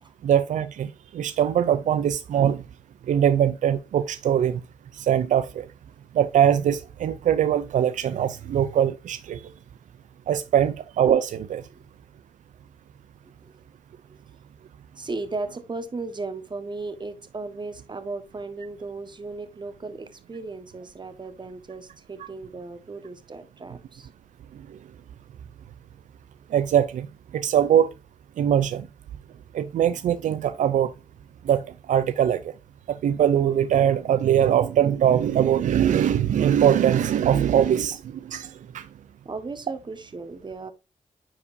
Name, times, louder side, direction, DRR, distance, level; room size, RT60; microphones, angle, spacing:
voice 1, 0.2-2.6 3.1-4.6 5.0-5.7 6.1-9.4 10.3-11.6 24.7-24.8 26.5-27.1 27.3-27.9 28.4-28.9 29.5-30.9 31.4-32.5 32.9-38.9, right 9 dB, 85° right, 0.5 m, -22 dB
voice 2, 15.0-24.1 39.2-40.7, right 3 dB, 40° right, 1.4 m, -36 dB
9.8 x 4.8 x 2.7 m
cardioid pair, 70°, 13 cm